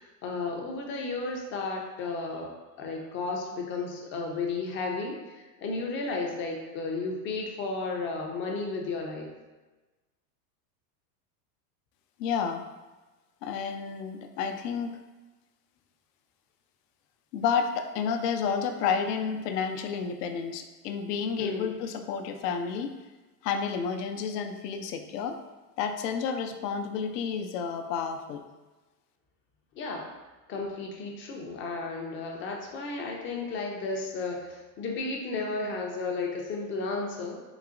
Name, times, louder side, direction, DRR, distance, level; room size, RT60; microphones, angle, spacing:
voice 1, 0.0-2.5 2.8-9.3 21.4-21.7 29.7-30.1 30.5-37.4, left 3 dB, 25° left, 1 dB, 0.4 m, -33 dB
voice 2, 12.2-12.6 13.4-15.0 17.3-22.9 23.4-25.4 25.8-28.4, left 6 dB, 80° left, 6 dB, 0.6 m, -30 dB
3.9 x 2.9 x 2.4 m, 1.2 s
supercardioid pair, 125°, 48 cm